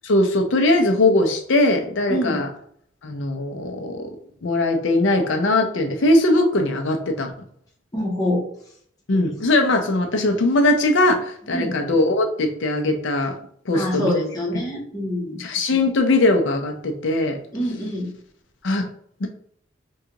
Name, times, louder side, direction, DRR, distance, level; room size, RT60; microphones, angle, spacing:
voice 1, 0.0-2.5 3.0-4.1 4.4-7.3 9.1-13.3 13.7-14.2 15.4-17.4 18.6-18.9 19.2-19.3, left 2 dB, 70° left, 4 dB, 0.6 m, -20 dB
voice 2, 2.1-2.5 7.9-8.4 11.5-11.8 13.7-15.4 17.5-18.1, left 1 dB, 20° left, -4 dB, 0.9 m, -25 dB
3.6 x 2.3 x 2.9 m, 0.63 s
head